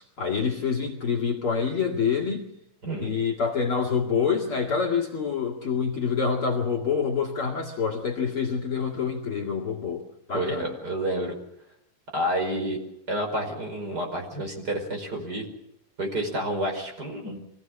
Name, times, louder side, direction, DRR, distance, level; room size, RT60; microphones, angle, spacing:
voice 1, 0.0-2.5 3.0-10.7, left 6 dB, 45° left, -2 dB, 2.8 m, -27 dB
voice 2, 2.8-3.2 10.3-11.3 12.1-12.8 13.1-15.4 16.0-17.4, right 1 dB, 30° right, 2 dB, 5.5 m, -29 dB
24.5 x 17.0 x 7.4 m, 0.79 s
omnidirectional pair, 3.7 m